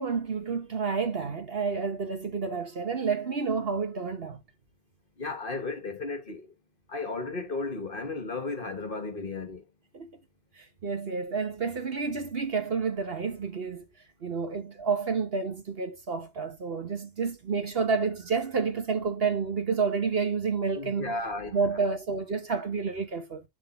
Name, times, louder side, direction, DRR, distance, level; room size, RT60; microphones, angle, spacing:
voice 1, 0.0-4.4 9.9-10.1 10.6-13.8 14.2-21.1 21.5-23.4, right 5 dB, 45° right, 1.1 m, -29 dB
voice 2, 5.2-6.5 6.9-9.6 20.7-21.6, left 3 dB, 40° left, 1.4 m, -34 dB
11.0 x 3.7 x 4.2 m
omnidirectional pair, 1.5 m